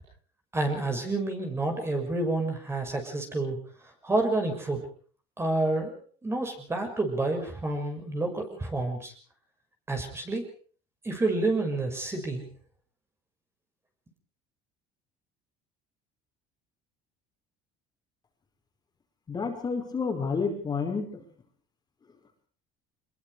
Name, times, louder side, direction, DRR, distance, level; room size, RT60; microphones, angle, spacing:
voice 1, 0.5-3.6 4.0-4.8 5.4-6.0 6.2-9.1 9.9-10.4 11.0-12.5, right 2 dB, 15° right, 4 dB, 6.4 m, -29 dB
voice 2, 19.3-21.1, left 5 dB, 25° left, 3 dB, 5.5 m, -29 dB
24.0 x 22.0 x 5.0 m, 0.43 s
cardioid pair, 115°, 15 cm